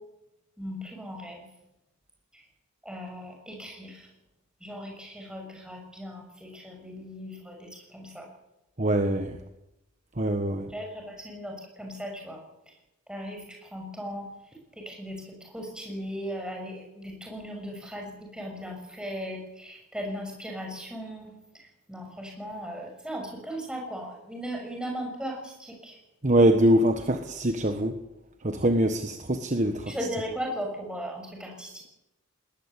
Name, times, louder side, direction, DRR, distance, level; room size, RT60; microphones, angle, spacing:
voice 1, 0.6-1.4 2.3-2.4 2.8-4.1 4.6-8.3 10.7-12.4 13.1-14.3 14.8-21.3 21.9-26.0 29.9-31.8, equal, 5° right, 1 dB, 6.5 m, -37 dB
voice 2, 8.8-9.4 10.2-10.7 26.2-28.0 28.4-29.9, right 1 dB, 35° right, 6 dB, 1.3 m, -23 dB
20.5 x 19.5 x 8.4 m, 0.90 s
head